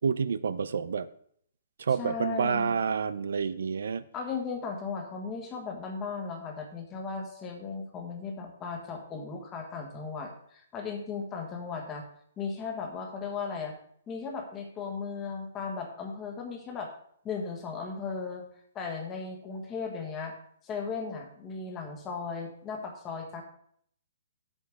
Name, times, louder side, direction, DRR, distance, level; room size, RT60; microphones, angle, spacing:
voice 1, 0.0-1.1 1.8-4.0, right 6 dB, 75° right, 14 dB, 0.5 m, -28 dB
voice 2, 1.9-2.8 4.1-12.0 12.4-13.7 14.1-16.9 17.2-18.4 18.7-20.3 20.6-23.4, left 5 dB, 15° left, 2 dB, 1.4 m, -36 dB
9.8 x 8.3 x 3.5 m, 0.64 s
hypercardioid pair, 165°, 0 cm